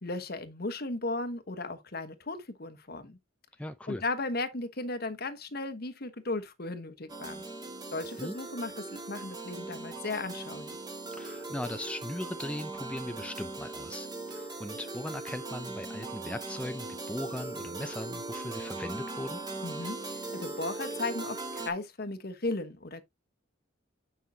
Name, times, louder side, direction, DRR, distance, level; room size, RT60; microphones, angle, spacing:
voice 1, 0.0-3.2 3.9-7.5 7.9-10.8 19.6-23.0, left 2 dB, 50° left, 1.2 m, -36 dB
voice 2, 3.6-4.0 8.2-8.4 11.1-19.4, left 1 dB, 5° left, 0.5 m, -39 dB
sound 1, 7.1-21.7, right 3 dB, 20° right, 2.1 m, -39 dB
9.6 x 5.6 x 2.8 m
head